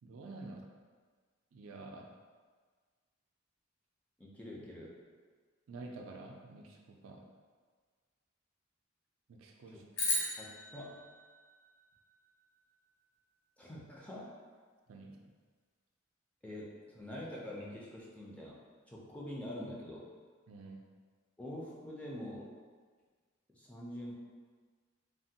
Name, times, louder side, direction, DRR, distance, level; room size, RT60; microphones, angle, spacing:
voice 1, 0.0-0.7 1.5-2.1 5.7-7.3 9.3-9.8 14.9-15.2 20.5-20.8, right 3 dB, 75° right, 1 dB, 0.4 m, -49 dB
voice 2, 4.2-4.9 9.7-9.8 10.4-11.0 13.6-14.4 16.4-18.6 18.9-20.1 21.4-22.5 23.5-24.1, left 1 dB, 5° left, -5 dB, 0.4 m, -45 dB
sound 1, 9.9-12.4, left 2 dB, 65° left, 0.7 m, -37 dB
3.3 x 2.1 x 2.7 m, 1.5 s
head